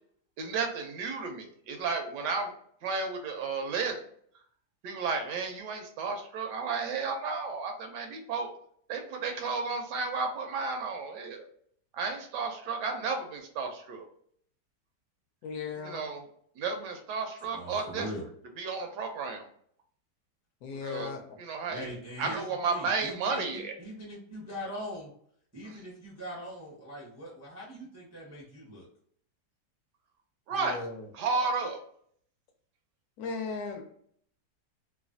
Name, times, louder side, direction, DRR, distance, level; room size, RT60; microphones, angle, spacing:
voice 1, 0.4-2.5 2.8-4.0 4.8-8.6 8.9-11.4 11.9-14.1 15.8-16.3 16.6-18.1 18.6-19.5 20.8-21.1 21.4-21.8 22.2-23.7 25.7-25.8 30.5-30.8 31.1-31.8, right 4 dB, 80° right, 4 dB, 1.2 m, -33 dB
voice 2, 15.4-16.1 20.6-21.4 30.6-31.0 33.2-33.8, left 5 dB, 70° left, 4 dB, 1.0 m, -37 dB
voice 3, 17.5-18.2 21.7-25.1 25.5-28.9, equal, 25° right, -5 dB, 0.3 m, -41 dB
3.2 x 2.1 x 2.5 m, 0.63 s
omnidirectional pair, 1.8 m